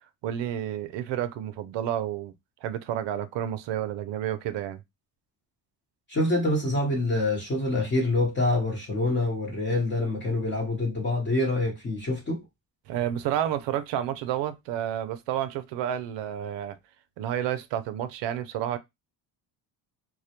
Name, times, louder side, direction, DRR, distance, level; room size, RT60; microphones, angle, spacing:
voice 1, 0.2-2.3 2.6-4.8 12.9-16.8 17.2-18.8, right 11 dB, 70° right, 0.5 m, -30 dB
voice 2, 6.1-12.4, left 2 dB, 25° left, 0.9 m, -26 dB
2.2 x 2.1 x 2.8 m
cardioid pair, 100°, 44 cm